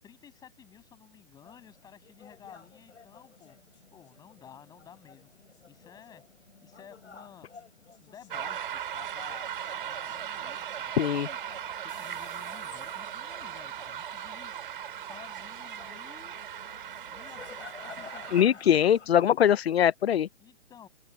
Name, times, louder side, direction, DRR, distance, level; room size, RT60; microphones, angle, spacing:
voice 1, 0.0-3.6 3.9-5.3 5.7-7.5 8.0-11.4 11.8-16.3 17.1-19.2 20.4-20.9, left 8 dB, 10° left, 6.3 m, -53 dB
sound 1, 1.4-19.3, left 5 dB, 85° left, 5.1 m, -52 dB
sound 2, 8.3-18.4, right 10 dB, 50° right, 5.2 m, -38 dB
voice 2, 10.9-11.3 18.3-20.3, left 9 dB, 60° left, 0.6 m, -22 dB
open air
hypercardioid pair, 155°, 35 cm